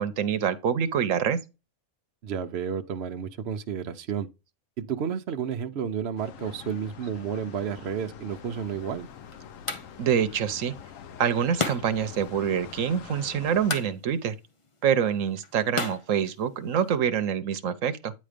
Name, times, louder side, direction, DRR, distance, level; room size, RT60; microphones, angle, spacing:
voice 1, 0.0-1.4 10.0-10.7 11.2-14.4 14.8-18.1, right 8 dB, 80° right, 1.1 m, -26 dB
voice 2, 2.2-4.3 4.8-9.1, right 7 dB, 60° right, 0.9 m, -31 dB
sound 1, 6.2-13.8, left 8 dB, 85° left, 1.1 m, -45 dB
sound 2, 8.4-17.0, left 3 dB, 30° left, 0.8 m, -38 dB
9.4 x 3.1 x 5.0 m
omnidirectional pair, 1.3 m